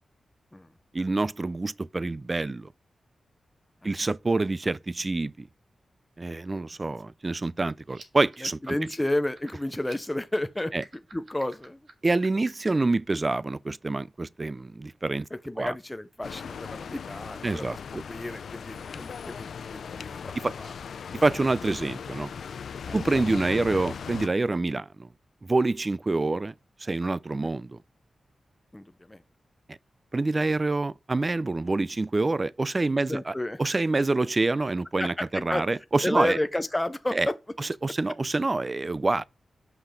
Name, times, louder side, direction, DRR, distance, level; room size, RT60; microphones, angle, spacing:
voice 1, 0.9-2.7 3.8-5.5 6.2-8.8 10.7-10.8 12.0-15.3 15.6-15.8 17.4-17.8 20.4-20.5 21.2-22.3 22.9-25.1 25.4-26.5 26.8-27.8 29.7-29.8 30.1-33.3 33.6-36.4 37.1-37.3 37.6-39.2, right 3 dB, 30° right, 0.3 m, -26 dB
sound 1, 7.8-12.9, right 4 dB, 60° right, 1.5 m, -50 dB
voice 2, 8.6-10.7 11.1-11.8 15.5-17.7 18.1-20.7 22.8-23.0 28.7-29.2 33.1-33.6 35.0-35.6 36.0-37.3, left 1 dB, 10° left, 0.6 m, -31 dB
sound 2, 16.2-24.3, left 6 dB, 85° left, 0.4 m, -38 dB
5.8 x 5.7 x 5.0 m
wide cardioid pair, 115°, 0 cm